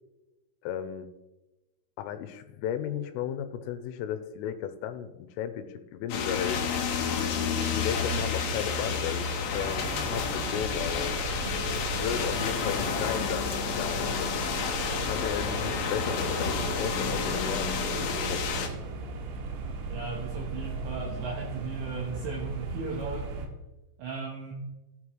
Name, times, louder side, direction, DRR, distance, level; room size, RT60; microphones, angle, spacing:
voice 1, 0.6-1.1 2.0-6.6 7.3-11.2 11.5-14.5 15.1-18.5, left 9 dB, 90° left, 10 dB, 3.2 m, -35 dB
sound 1, 6.1-18.7, left 5 dB, 70° left, 2.2 m, -30 dB
sound 2, 9.6-23.5, right 3 dB, 90° right, 3.9 m, -37 dB
voice 2, 19.9-23.3 24.0-24.5, right 4 dB, 70° right, -2 dB, 3.4 m, -36 dB
14.5 x 10.0 x 3.2 m, 1.1 s
omnidirectional pair, 5.8 m